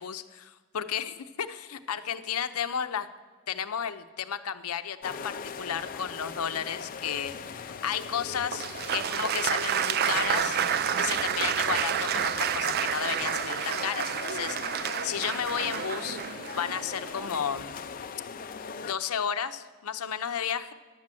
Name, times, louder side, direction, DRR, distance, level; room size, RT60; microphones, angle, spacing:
voice 1, 0.0-3.1 3.5-10.6 11.0-16.2 16.6-17.8 18.8-20.7, left 8 dB, 85° left, 10 dB, 0.6 m, -33 dB
sound 1, 5.0-18.9, left 5 dB, 40° left, 0.5 m, -40 dB
Applause, 8.5-17.4, right 9 dB, 45° right, 0.3 m, -30 dB
11.0 x 7.5 x 7.5 m, 1.4 s
head